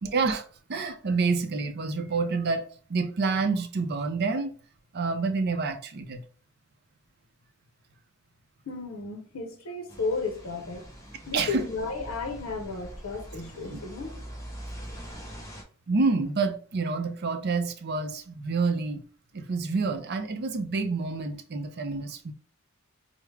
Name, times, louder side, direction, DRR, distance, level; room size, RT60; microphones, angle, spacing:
voice 1, 0.0-0.4 0.7-4.5 4.9-6.2 11.3-11.7 13.7-13.8 15.9-19.0 19.3-22.3, right 4 dB, 50° right, 0.5 m, -28 dB
voice 2, 8.7-10.9 11.3-14.2, left 3 dB, 75° left, 0.7 m, -33 dB
sound 1, 9.9-15.6, equal, 15° left, 0.8 m, -43 dB
4.7 x 2.1 x 3.2 m
head